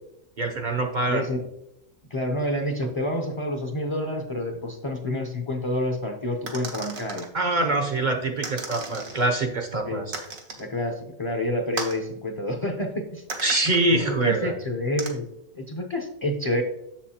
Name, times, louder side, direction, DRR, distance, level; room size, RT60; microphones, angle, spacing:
voice 1, 0.4-1.2 7.3-10.1 13.4-14.5, right 2 dB, 45° right, 4 dB, 0.6 m, -24 dB
voice 2, 1.1-1.4 2.1-7.3 9.8-10.0 10.6-13.2 13.9-15.3 15.5-16.6, left 1 dB, 35° left, 2 dB, 0.5 m, -28 dB
sound 1, 6.5-7.3 8.4-9.3 10.1-10.7 11.8-12.0 13.3-13.8 15.0-15.1, right 4 dB, 85° right, 1.5 m, -35 dB
7.2 x 7.1 x 2.8 m, 0.83 s
omnidirectional pair, 1.4 m